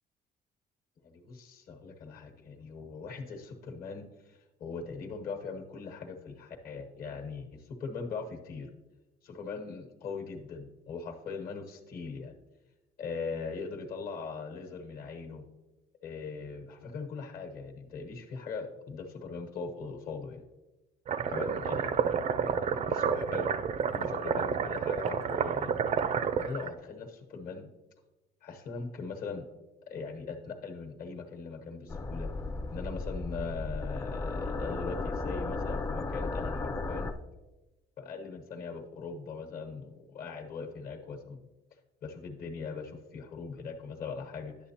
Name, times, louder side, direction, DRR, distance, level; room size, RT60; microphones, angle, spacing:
voice 1, 1.0-8.7 9.2-12.3 13.0-15.5 16.0-20.4 21.3-22.1 22.4-23.5 23.9-25.7 26.4-27.7 28.4-29.5 29.9-32.3 32.7-37.1 38.0-41.4 42.0-44.6, left 4 dB, 60° left, 5 dB, 1.1 m, -40 dB
sound 1, 21.1-26.7, right 7 dB, 45° right, 0.4 m, -30 dB
sound 2, 31.9-37.1, left 3 dB, 20° left, 0.4 m, -34 dB
10.0 x 6.5 x 2.8 m, 1.1 s
cardioid pair, 110°, 17 cm